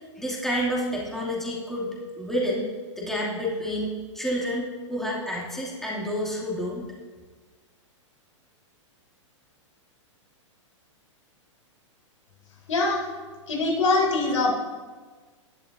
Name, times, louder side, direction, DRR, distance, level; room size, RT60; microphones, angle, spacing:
voice 1, 0.2-1.9 2.2-2.7 3.0-6.8, equal, ahead, -5 dB, 2.6 m, -29 dB
voice 2, 12.7-13.0 13.5-14.5, left 3 dB, 80° left, -1 dB, 4.0 m, -23 dB
19.0 x 11.5 x 2.7 m, 1.4 s
hypercardioid pair, 125°, 16 cm